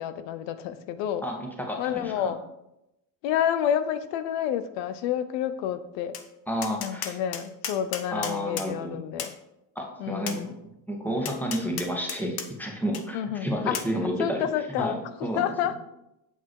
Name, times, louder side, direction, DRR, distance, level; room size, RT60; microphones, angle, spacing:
voice 1, 0.0-1.2 1.8-2.4 3.2-6.2 6.8-9.3 10.0-10.5 13.1-13.8 14.2-15.8, left 10 dB, 80° left, 12 dB, 0.9 m, -29 dB
voice 2, 1.2-2.3 6.5-7.1 8.1-9.0 9.8-10.5 10.9-14.5 14.8-15.5, equal, 5° left, 1 dB, 2.1 m, -31 dB
Tap, 6.1-6.3 6.6-8.7 9.2-9.4 10.3-10.4 11.3-12.5 12.9-13.0 13.7-13.9, left 8 dB, 55° left, 1.2 m, -34 dB
8.4 x 6.0 x 4.7 m, 0.88 s
supercardioid pair, 95°, 44 cm